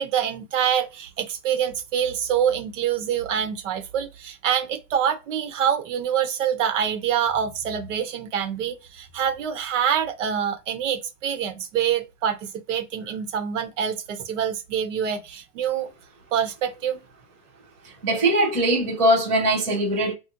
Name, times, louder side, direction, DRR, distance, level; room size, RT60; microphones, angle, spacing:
voice 1, 0.0-15.9 16.3-17.0, right 8 dB, 50° right, 1.1 m, -26 dB
voice 2, 18.0-20.1, right 1 dB, 10° right, 0.4 m, -21 dB
4.3 x 2.4 x 2.5 m
supercardioid pair, 170°, 47 cm